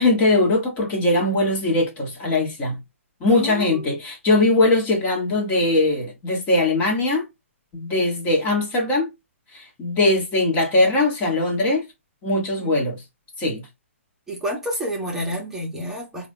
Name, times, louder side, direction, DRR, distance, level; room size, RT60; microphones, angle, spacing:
voice 1, 0.0-2.8 3.2-7.2 7.7-9.1 9.5-11.8 12.2-13.0 13.4-13.6, left 2 dB, 25° left, 1.3 m, -20 dB
voice 2, 3.2-3.9 12.6-12.7 14.3-16.3, equal, 5° right, 1.2 m, -29 dB
4.2 x 2.5 x 3.6 m
hypercardioid pair, 130°, 7 cm